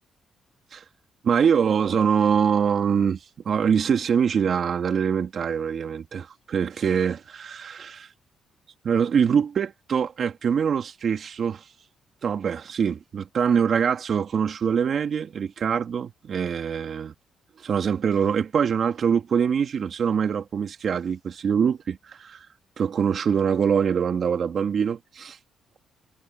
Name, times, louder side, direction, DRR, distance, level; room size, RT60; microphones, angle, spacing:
voice 1, 1.2-3.2 3.4-8.1 8.8-11.6 12.2-17.1 17.6-22.5 22.8-25.4, right 7 dB, 55° right, 2.5 m, -24 dB
cardioid pair, 90°, 0 cm